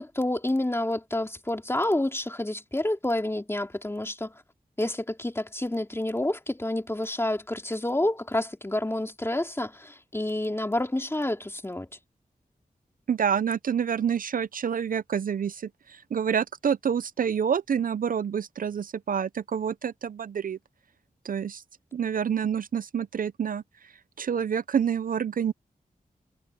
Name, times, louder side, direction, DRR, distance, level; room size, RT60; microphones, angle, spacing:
voice 1, 0.0-4.3 4.8-11.9, left 1 dB, 15° left, 3.0 m, -29 dB
voice 2, 13.1-20.6 21.2-21.6 21.9-23.6 24.2-25.5, right 7 dB, 65° right, 0.5 m, -28 dB
wide cardioid pair, 85°, 15 cm